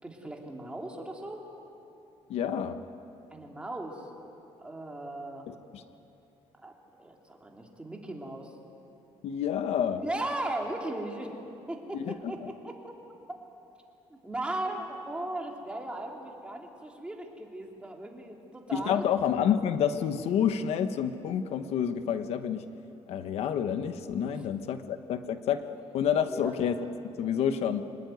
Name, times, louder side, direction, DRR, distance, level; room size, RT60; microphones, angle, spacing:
voice 1, 0.0-1.4 3.3-4.1 4.6-5.5 6.6-8.6 10.0-11.4 11.7-12.9 14.1-19.0 24.2-24.5 26.3-26.5, right 1 dB, 10° right, 0 dB, 3.2 m, -37 dB
voice 2, 2.3-2.8 5.5-5.8 9.2-10.0 11.9-12.3 18.7-22.7 23.1-25.7 25.9-26.7 27.2-27.8, left 8 dB, 75° left, 9 dB, 1.1 m, -29 dB
25.5 x 20.5 x 9.4 m, 2.8 s
cardioid pair, 130°, 11 cm